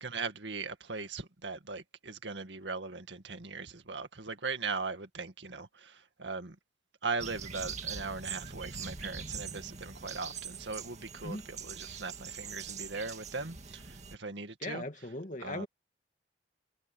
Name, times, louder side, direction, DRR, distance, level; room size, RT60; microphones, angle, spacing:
voice 1, 0.0-5.9 6.2-6.6 7.0-13.8 14.2-14.8 15.4-15.7, right 4 dB, 85° right, 2.0 m, -39 dB
sound 1, 7.2-14.2, right 6 dB, 40° right, 2.0 m, -43 dB
voice 2, 14.6-15.7, left 2 dB, 45° left, 2.3 m, -39 dB
head